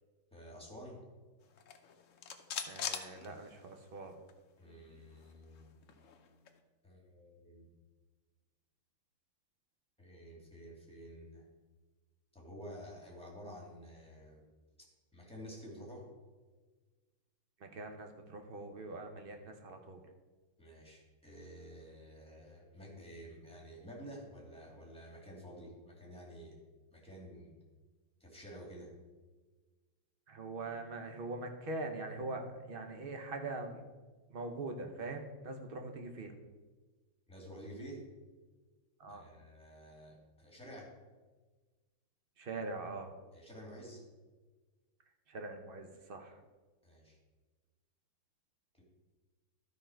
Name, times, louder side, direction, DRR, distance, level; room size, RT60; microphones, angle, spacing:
voice 1, 0.3-1.0 4.6-5.7 6.8-7.7 10.0-11.5 12.3-14.4 15.1-16.1 20.6-26.6 26.9-27.6 28.2-28.9 37.3-38.0 39.1-40.9 43.3-44.0 46.8-47.2 48.7-48.8, equal, 5° left, -2 dB, 2.2 m, -50 dB
sound 1, 1.5-4.0 4.3-4.4 4.7-6.6, left 7 dB, 60° left, 0.8 m, -44 dB
voice 2, 2.7-4.2 17.6-20.0 30.3-33.9 34.3-36.3 39.0-39.2 42.4-43.1 45.3-46.4, right 3 dB, 55° right, 5 dB, 0.6 m, -42 dB
12.5 x 5.6 x 4.5 m, 1.3 s
omnidirectional pair, 2.1 m